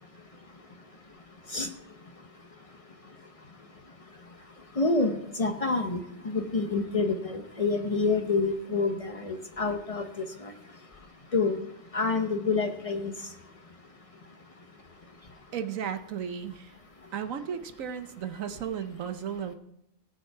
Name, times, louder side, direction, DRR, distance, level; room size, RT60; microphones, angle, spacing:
voice 1, 4.8-10.1 10.4-10.5 11.3-11.6 11.9-13.1, left 3 dB, 65° left, 5 dB, 0.3 m, -27 dB
voice 2, 15.5-16.7 17.1-19.5, right 8 dB, 55° right, 10 dB, 1.0 m, -34 dB
17.5 x 6.9 x 4.6 m, 0.79 s
omnidirectional pair, 2.0 m